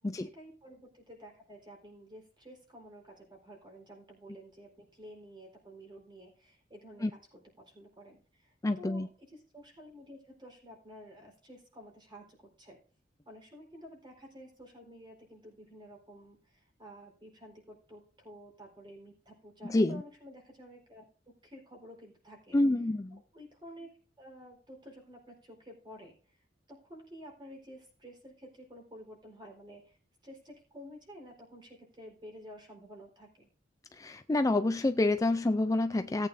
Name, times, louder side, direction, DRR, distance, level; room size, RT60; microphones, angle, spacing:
voice 1, 0.0-12.8 13.3-22.6 23.1-23.9 24.2-26.4 26.7-30.0 30.2-33.5, equal, 25° right, 4.1 m, -51 dB
voice 2, 8.6-9.1 19.6-20.0 22.5-23.2 33.9-36.3, left 2 dB, 20° left, 0.4 m, -28 dB
18.0 x 8.7 x 2.6 m
head